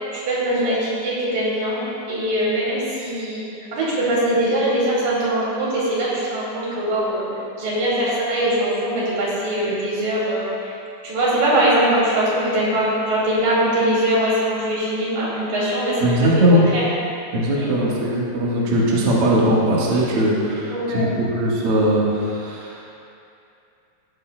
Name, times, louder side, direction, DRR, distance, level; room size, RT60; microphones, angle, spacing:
voice 1, 0.1-1.8 2.1-3.4 3.7-7.2 7.6-10.7 11.0-16.1 16.4-16.8 17.6-17.7 20.7-21.2, right 1 dB, 55° right, -8 dB, 3.8 m, -22 dB
voice 2, 16.0-16.6 17.3-22.8, equal, 70° right, -6 dB, 1.3 m, -19 dB
17.0 x 8.4 x 2.2 m, 2.6 s
omnidirectional pair, 5.0 m